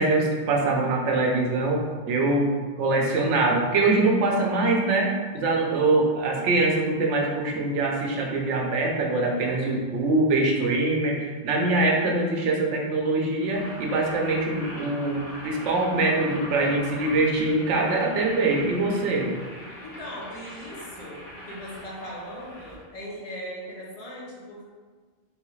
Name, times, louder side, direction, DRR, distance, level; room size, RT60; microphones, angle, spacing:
voice 1, 0.0-2.5 2.8-19.3, right 2 dB, 85° right, 0 dB, 0.9 m, -23 dB
voice 2, 9.3-9.9 19.8-24.7, equal, 40° left, -4 dB, 0.7 m, -39 dB
Boiling, 13.4-22.8, equal, 55° left, 1.3 m, -42 dB
3.3 x 3.1 x 2.3 m, 1.4 s
omnidirectional pair, 1.2 m